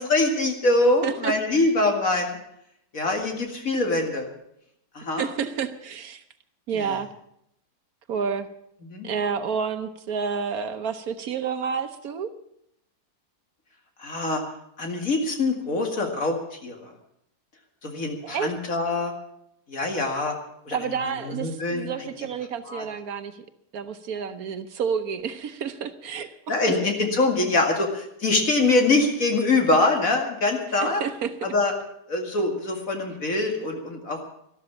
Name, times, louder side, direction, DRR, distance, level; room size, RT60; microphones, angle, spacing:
voice 1, 0.0-2.4 2.9-4.3 4.9-5.3 6.7-6.8 8.8-9.1 14.0-14.4 14.8-16.9 17.8-19.1 19.7-20.3 20.7-20.8 21.3-22.1 22.7-22.8 26.5-31.0 31.4-31.7 32.1-34.2, left 2 dB, 55° left, 3 dB, 2.5 m, -24 dB
voice 2, 1.0-1.6 5.2-6.2 6.7-7.1 8.1-8.5 9.0-12.3 18.2-18.5 20.7-23.4 23.7-26.8 30.8-31.3, right 6 dB, 65° right, 9 dB, 1.3 m, -30 dB
12.5 x 12.5 x 7.2 m, 0.76 s
omnidirectional pair, 1.7 m